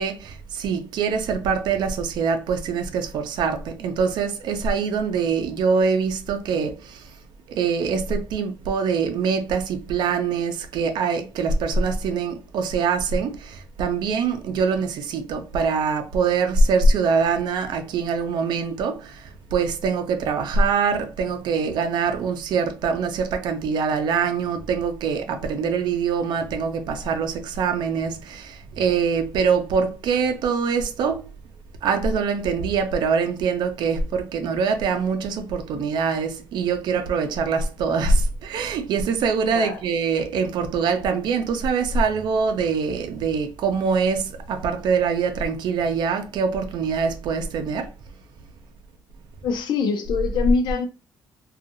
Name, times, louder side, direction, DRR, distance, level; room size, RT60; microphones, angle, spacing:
voice 1, 0.0-7.1 7.5-31.3 31.8-47.9, right 5 dB, 75° right, 0.5 m, -24 dB
voice 2, 49.4-50.9, left 5 dB, 80° left, 0.6 m, -23 dB
2.7 x 2.4 x 2.5 m
cardioid pair, 170°, 8 cm